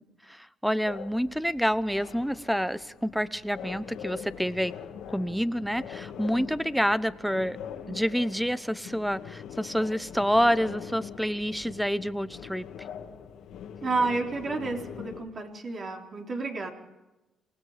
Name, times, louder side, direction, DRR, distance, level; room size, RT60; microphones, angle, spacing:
voice 1, 0.3-4.8 5.1-7.6 7.9-12.6, equal, ahead, 15 dB, 1.0 m, -28 dB
sound 1, 0.8-15.2, left 8 dB, 80° left, 2.1 m, -43 dB
voice 2, 13.8-16.7, right 3 dB, 45° right, 1 dB, 4.1 m, -30 dB
28.0 x 19.0 x 5.1 m, 1.0 s
cardioid pair, 90°, 0 cm